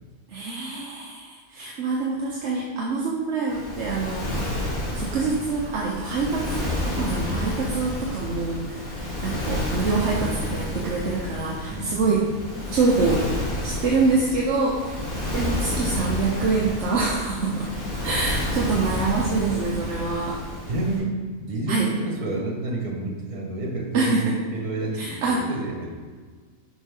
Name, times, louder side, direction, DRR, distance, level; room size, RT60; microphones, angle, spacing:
voice 1, 0.3-4.3 4.9-8.9 9.2-12.3 12.7-13.3 13.6-15.0 15.3-17.7 18.0-20.4 21.7-21.9 23.9-24.4 24.9-25.4, right 3 dB, 55° right, -3 dB, 1.1 m, -25 dB
Waves surf, 3.5-21.0, left 1 dB, 65° left, 2.5 m, -30 dB
voice 2, 11.7-12.4 20.7-25.9, right 2 dB, 75° right, -1 dB, 1.8 m, -30 dB
6.9 x 5.4 x 3.7 m, 1.5 s
omnidirectional pair, 1.6 m